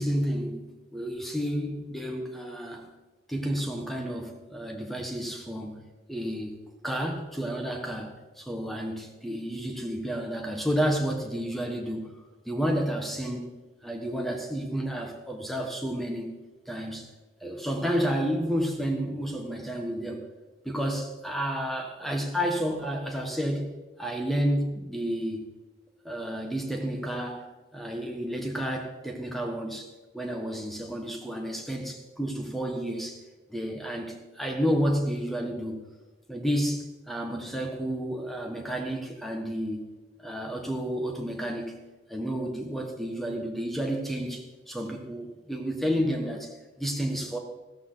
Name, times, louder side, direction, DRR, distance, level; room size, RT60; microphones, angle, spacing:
voice 1, 0.0-2.9 3.3-5.8 6.1-12.2 12.4-13.5 13.8-16.3 16.7-17.1 17.4-20.2 20.6-23.7 24.0-25.5 26.0-33.2 33.5-35.8 36.3-39.9 40.2-41.8 42.1-47.4, equal, ahead, 3 dB, 1.5 m, -31 dB
15.0 x 13.5 x 4.1 m, 1.2 s
head